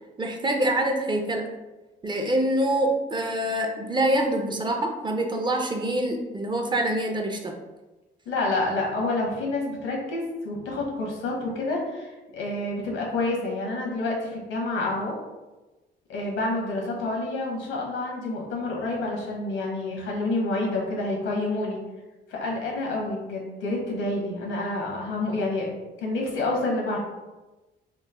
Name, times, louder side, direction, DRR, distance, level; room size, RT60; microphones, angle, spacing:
voice 1, 0.2-1.4 2.0-7.5, right 1 dB, 25° right, 3 dB, 0.4 m, -25 dB
voice 2, 8.3-15.1 16.1-21.8 22.3-25.7 26.0-27.0, left 2 dB, 90° left, -1 dB, 0.9 m, -28 dB
3.0 x 2.0 x 3.4 m, 1.1 s
cardioid pair, 90°, 20 cm